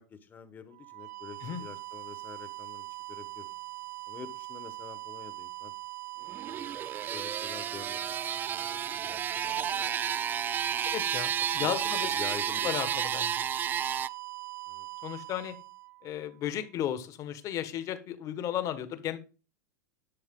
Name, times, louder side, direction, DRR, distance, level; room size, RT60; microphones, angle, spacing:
voice 1, 0.0-3.5 4.1-5.7 6.4-8.1 8.5-10.0 10.7-10.8 11.6-11.7 12.1-12.9 13.7-14.0 14.7-14.9, left 6 dB, 20° left, 11 dB, 1.2 m, -47 dB
sound 1, 0.7-16.5, right 20 dB, 65° right, 1.1 m, -42 dB
sound 2, 6.3-14.1, right 9 dB, 20° right, 0.4 m, -32 dB
voice 2, 10.8-12.2 12.6-13.5 15.0-15.6 16.0-19.2, left 11 dB, 35° left, 11 dB, 1.4 m, -34 dB
11.5 x 6.6 x 3.8 m, 0.34 s
supercardioid pair, 135°, 9 cm